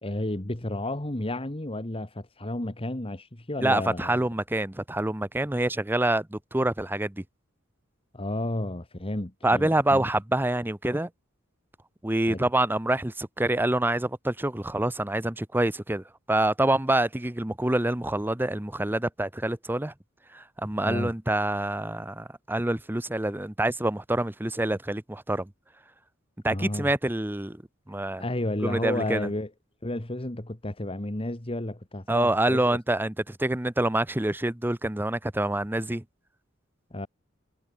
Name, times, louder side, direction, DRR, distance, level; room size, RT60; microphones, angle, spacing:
voice 1, 0.0-4.2 8.1-10.0 12.3-12.4 20.9-21.1 26.5-26.9 28.2-29.5 29.8-32.8 36.9-37.1, left 1 dB, 30° left, 1.7 m, -32 dB
voice 2, 3.6-7.2 9.4-11.1 12.0-19.9 20.3-25.5 26.4-27.6 27.9-28.2 28.6-29.3 32.1-36.0, right 1 dB, 10° right, 0.8 m, -26 dB
head